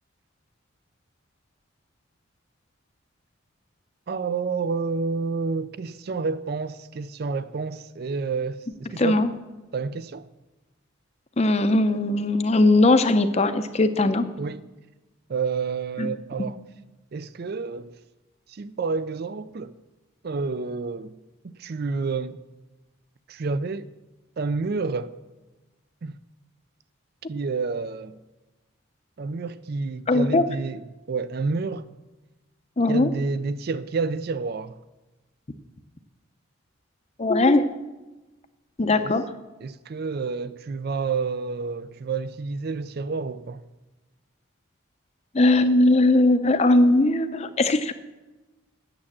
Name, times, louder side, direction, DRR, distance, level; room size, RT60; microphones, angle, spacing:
voice 1, 4.1-9.2 9.7-10.3 14.4-14.6 15.3-16.6 17.1-17.9 18.5-19.8 20.2-21.2 21.4-22.4 23.3-23.9 24.4-25.2 26.0-26.2 27.3-28.2 29.2-31.9 32.9-34.8 39.0-39.1 39.6-43.6, right 4 dB, 50° right, 0.4 m, -29 dB
voice 2, 9.0-9.3 11.4-14.2 16.0-16.1 30.1-30.4 32.8-33.1 37.2-37.7 38.8-39.3 45.3-47.9, left 2 dB, 30° left, 0.5 m, -19 dB
8.9 x 7.4 x 7.2 m
head